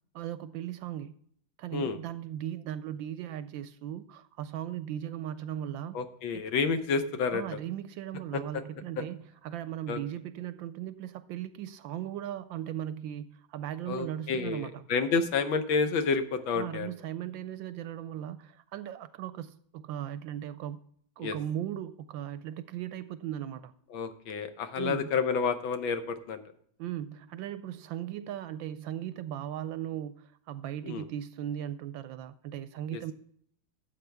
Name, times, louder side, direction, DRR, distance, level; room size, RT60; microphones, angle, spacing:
voice 1, 0.1-1.1 1.6-6.0 6.3-6.4 7.3-9.2 9.4-14.9 16.5-20.8 21.2-23.7 24.8-25.1 26.8-33.1, right 11 dB, 75° right, 1.2 m, -37 dB
voice 2, 5.9-7.4 8.5-8.6 9.9-10.0 13.9-16.9 21.2-21.3 23.9-26.4 30.8-31.0 32.9-33.0, left 5 dB, 70° left, 1.6 m, -29 dB
12.5 x 7.9 x 3.4 m
omnidirectional pair, 2.3 m